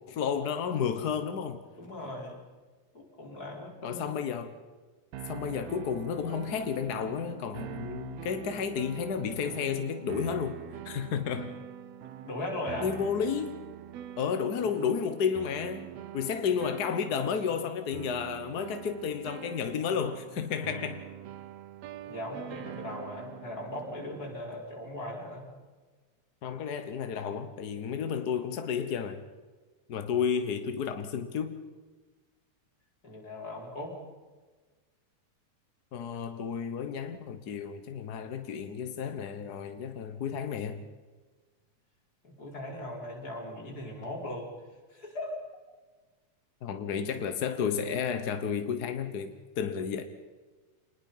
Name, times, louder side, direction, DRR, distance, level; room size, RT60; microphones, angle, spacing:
voice 1, 0.1-1.6 3.8-4.6 5.3-10.6 10.8-11.5 12.8-13.6 14.2-15.9 16.1-21.0 26.4-29.2 29.9-31.6 35.9-40.8 46.6-50.0, left 7 dB, 60° left, 1.0 m, -32 dB
voice 2, 1.8-2.4 2.9-4.2 12.2-13.0 22.0-25.4 33.0-34.0 42.2-44.5 44.9-45.3, left 1 dB, 30° left, 5.1 m, -38 dB
sound 1, 5.1-24.4, right 11 dB, 70° right, 1.9 m, -44 dB
27.0 x 20.0 x 5.6 m
omnidirectional pair, 3.3 m